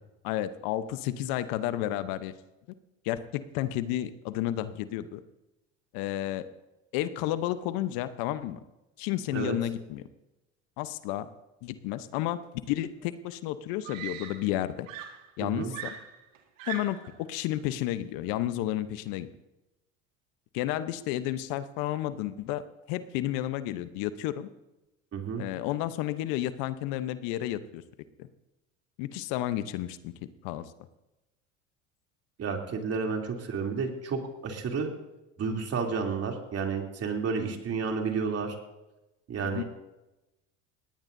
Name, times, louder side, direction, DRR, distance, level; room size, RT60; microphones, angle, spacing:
voice 1, 0.2-2.3 3.0-5.2 5.9-6.5 6.9-8.6 9.0-10.1 10.8-11.3 11.6-12.4 12.7-14.9 15.4-15.9 16.7-19.3 20.5-22.6 22.9-24.5 25.4-27.8 28.2-28.3 29.0-30.1 30.4-30.6 39.4-39.6, left 13 dB, 65° left, 12 dB, 1.0 m, -31 dB
Screaming, 13.0-13.1 13.8-14.6 14.9-17.2 18.2-18.4, right 10 dB, 85° right, 2.0 m, -41 dB
voice 2, 15.4-15.7 25.1-25.4 32.4-34.9 35.4-38.6 39.3-39.6, right 5 dB, 40° right, 1 dB, 3.1 m, -31 dB
19.5 x 18.0 x 2.7 m, 0.98 s
hypercardioid pair, 85°, 38 cm